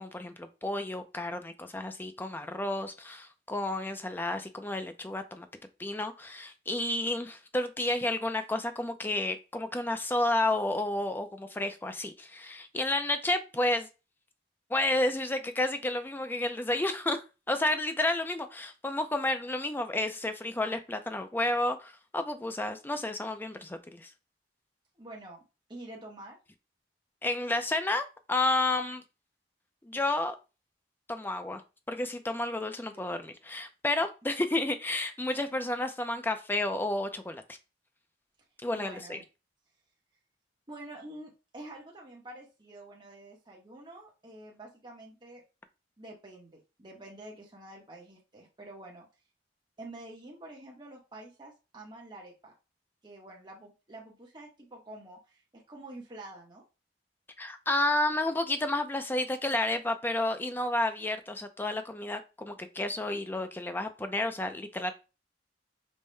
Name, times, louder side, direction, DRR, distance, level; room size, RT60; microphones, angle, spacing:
voice 1, 0.0-5.5 5.8-13.9 14.7-24.1 27.2-29.0 29.8-30.4 31.1-31.6 31.9-37.4 38.6-39.2 57.4-64.9, left 2 dB, 10° left, 0.4 m, -31 dB
voice 2, 25.0-25.4 25.7-26.4 32.9-33.1 38.7-39.2 40.7-45.4 46.0-49.1 49.8-52.5 53.0-56.6, right 1 dB, 25° right, 0.9 m, -47 dB
5.3 x 2.1 x 3.2 m
head